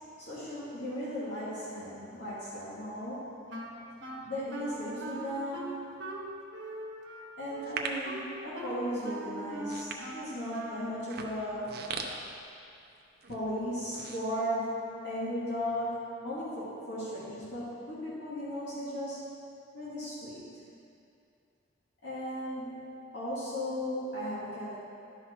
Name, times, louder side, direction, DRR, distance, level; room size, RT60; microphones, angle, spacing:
voice 1, 0.2-3.4 4.2-6.1 7.4-11.7 13.3-19.4 19.7-20.5 22.0-22.8 23.1-24.8, equal, 65° left, -10 dB, 2.4 m, -36 dB
Wind instrument woodwind instrument, 3.5-11.0, right 1 dB, 85° right, 1.2 m, -41 dB
sound 1, 7.6-8.1 8.8-9.0 9.5-10.5 11.0-12.9 13.2-13.4 13.8-14.9 15.3-15.4, right 5 dB, 55° right, 0.7 m, -39 dB
11.5 x 5.7 x 4.6 m, 2.5 s
head